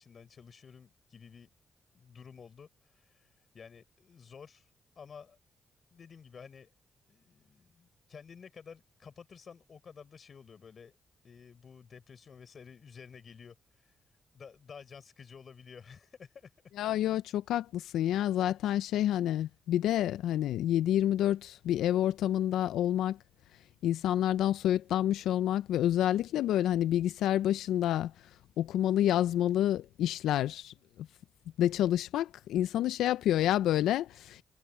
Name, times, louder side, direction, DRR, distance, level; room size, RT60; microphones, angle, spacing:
voice 1, 0.0-1.5 1.9-4.7 5.0-5.4 5.9-6.7 7.1-11.0 11.2-14.0 14.3-16.5, left 6 dB, 55° left, 4.4 m, -52 dB
voice 2, 16.8-23.2 23.8-28.1 28.6-30.7 31.6-34.4, left 12 dB, 90° left, 0.3 m, -28 dB
cardioid pair, 65°, 0 cm